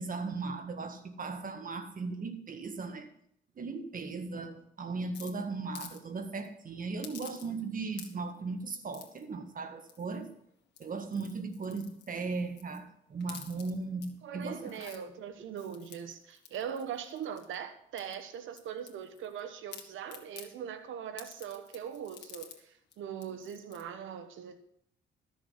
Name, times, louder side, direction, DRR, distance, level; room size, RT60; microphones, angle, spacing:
voice 1, 0.0-3.1 3.5-10.3 10.8-14.7, right 4 dB, 45° right, 7 dB, 1.7 m, -37 dB
sound 1, 5.1-6.0 6.3-6.5 7.0-7.7 7.9-8.4 8.9-9.2 9.9-10.3 10.7-12.8 13.2-14.1 14.5-15.0 15.6-17.6 18.0-19.4 19.7-20.5 21.2-22.6 22.9-23.0 23.2-23.8, left 8 dB, 60° left, 1.8 m, -50 dB
voice 2, 14.2-24.6, right 8 dB, 80° right, 9 dB, 1.1 m, -41 dB
13.0 x 7.0 x 5.7 m, 0.68 s
cardioid pair, 90°, 20 cm